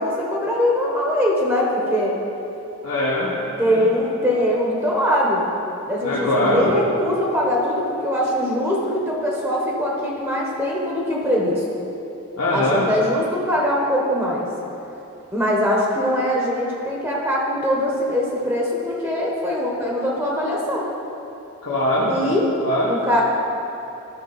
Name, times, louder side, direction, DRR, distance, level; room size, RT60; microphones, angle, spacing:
voice 1, 0.0-2.1 3.6-5.4 5.8-11.6 12.5-14.5 15.3-20.9 22.1-22.4 22.9-23.2, equal, 10° right, -3 dB, 1.0 m, -22 dB
voice 2, 2.8-3.3 3.6-3.8 6.0-6.7 12.4-12.9 21.6-22.2 22.6-22.9, left 1 dB, 80° left, -7 dB, 1.1 m, -21 dB
12.5 x 5.3 x 4.0 m, 2.9 s
head